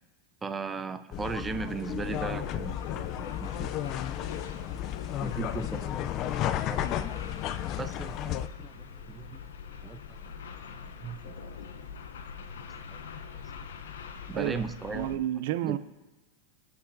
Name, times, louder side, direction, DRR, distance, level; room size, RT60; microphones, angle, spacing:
voice 1, 0.4-3.1 3.4-4.0 5.2-7.1 7.8-9.4 9.8-10.0 10.7-11.3 12.4-12.5 12.9-13.0 13.3-13.4 14.3-15.2 15.6-15.8, right 4 dB, 15° right, 0.6 m, -38 dB
sound 1, 1.1-8.5, left 11 dB, 40° left, 0.4 m, -33 dB
sound 2, 2.0-15.2, left 6 dB, 90° left, 0.8 m, -43 dB
voice 2, 14.9-15.8, right 13 dB, 65° right, 0.5 m, -30 dB
18.5 x 7.9 x 2.7 m
supercardioid pair, 130°, 0 cm